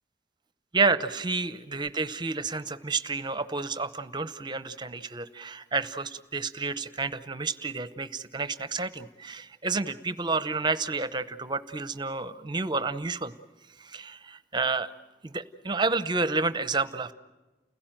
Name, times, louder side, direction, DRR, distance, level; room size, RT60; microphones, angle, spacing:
voice 1, 0.7-13.3 13.8-14.9 15.2-17.1, right 4 dB, 25° right, 13 dB, 0.8 m, -30 dB
30.0 x 16.5 x 9.0 m, 1.2 s
head